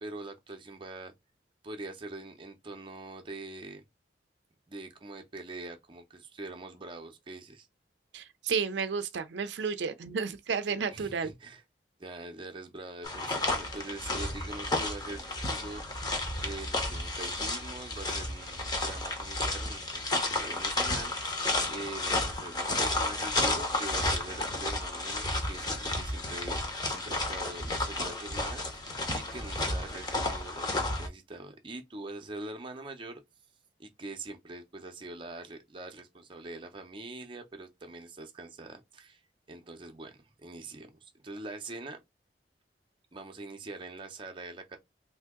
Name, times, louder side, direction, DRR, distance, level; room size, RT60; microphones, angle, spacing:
voice 1, 0.0-1.1 1.6-3.8 4.7-7.7 10.9-11.6 12.0-16.0 16.4-33.2 33.8-39.2 39.5-40.1 40.4-42.0 43.1-44.8, right 2 dB, 30° right, 0.6 m, -43 dB
voice 2, 8.1-11.3, right 5 dB, 80° right, 0.4 m, -32 dB
sound 1, 13.0-31.1, left 2 dB, 25° left, 0.8 m, -32 dB
2.7 x 2.7 x 3.6 m
head